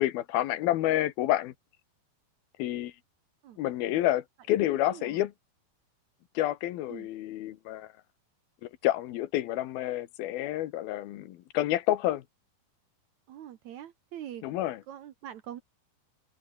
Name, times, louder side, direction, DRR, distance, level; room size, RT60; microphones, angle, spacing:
voice 1, 0.0-1.5 2.6-2.9 3.6-5.3 6.4-7.9 8.6-12.2 14.4-14.8, left 14 dB, 85° left, 3.1 m, -29 dB
voice 2, 4.6-5.2 6.9-7.1 13.3-14.5 14.9-15.6, right 11 dB, 65° right, 2.1 m, -44 dB
omnidirectional pair, 4.2 m